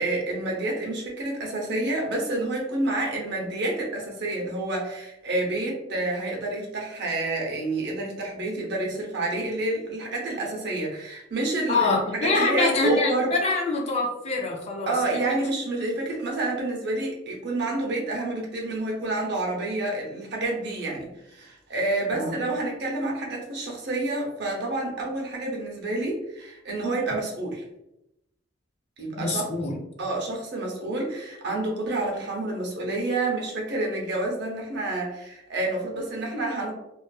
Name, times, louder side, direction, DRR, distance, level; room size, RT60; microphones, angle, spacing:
voice 1, 0.0-11.9 12.2-13.3 14.9-27.6 29.0-29.4 30.0-36.7, right 2 dB, 65° right, -1 dB, 0.7 m, -28 dB
voice 2, 11.7-14.9 15.2-15.4 22.1-22.4 29.2-29.8, left 3 dB, 35° left, 0 dB, 0.4 m, -25 dB
2.4 x 2.4 x 2.3 m, 0.85 s
head